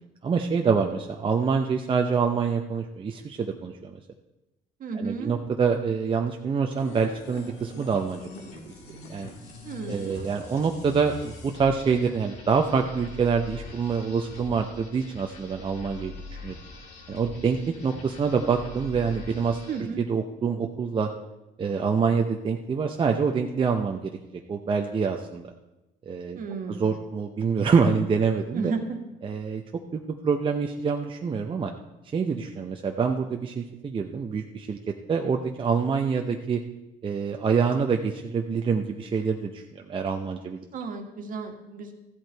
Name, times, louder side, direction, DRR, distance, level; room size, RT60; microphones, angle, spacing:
voice 1, 0.2-4.0 4.9-8.5 9.1-9.3 9.9-16.1 16.4-16.5 17.1-19.6 20.0-21.1 21.6-24.1 24.5-25.5 26.1-26.4 26.7-28.7 29.2-29.6 29.9-31.7 32.1-36.6 37.0-40.6, right 5 dB, 30° right, 3 dB, 0.7 m, -26 dB
voice 2, 4.8-5.3 9.6-10.1 19.7-20.0 26.3-26.8 28.5-28.8 40.7-41.9, right 4 dB, 55° right, 4 dB, 1.6 m, -33 dB
sound 1, 6.7-19.9, left 3 dB, 85° left, 2.2 m, -43 dB
14.0 x 7.9 x 4.5 m, 1.0 s
cardioid pair, 110°, 17 cm